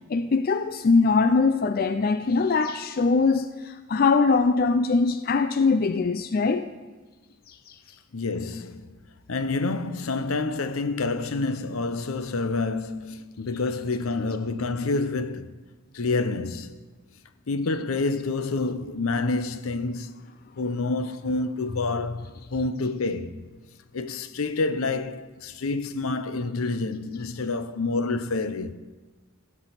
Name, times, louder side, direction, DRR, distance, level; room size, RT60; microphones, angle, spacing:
voice 1, 0.1-6.7 7.5-7.7, left 4 dB, 45° left, 0.4 m, -22 dB
voice 2, 8.1-9.0 9.3-15.5 15.9-16.8 17.5-20.1 20.6-23.4 23.9-28.7, left 3 dB, 80° left, 0.7 m, -28 dB
15.5 x 6.2 x 8.1 m
head